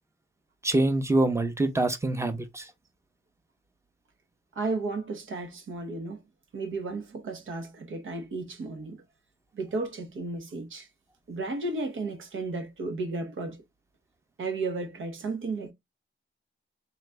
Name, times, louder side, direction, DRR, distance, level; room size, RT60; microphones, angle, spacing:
voice 1, 0.6-2.7, right 2 dB, 15° right, 0.8 m, -25 dB
voice 2, 4.5-6.2 6.5-9.0 9.5-10.9 11.3-13.6 14.4-15.7, right 3 dB, 75° right, 1.1 m, -33 dB
4.1 x 2.6 x 3.4 m
wide cardioid pair, 110°, 20 cm